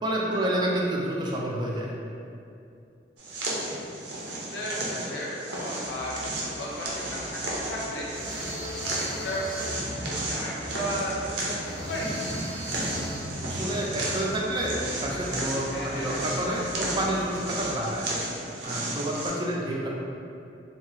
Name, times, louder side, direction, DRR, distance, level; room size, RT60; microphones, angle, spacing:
voice 1, 0.0-1.9 13.4-18.0 18.6-19.9, right 1 dB, 25° right, -3 dB, 0.3 m, -29 dB
sound 1, 3.2-19.3, right 1 dB, 75° right, 0.5 m, -34 dB
voice 2, 4.1-6.2 6.5-8.4 9.0-9.9 10.2-12.1 15.7-16.1, equal, 90° left, -4 dB, 0.6 m, -35 dB
sound 2, 5.8-17.9, equal, 50° left, 0.4 m, -41 dB
sound 3, 8.1-9.8 11.6-13.4, equal, 5° left, 0.7 m, -40 dB
2.7 x 2.2 x 3.0 m, 2.5 s
head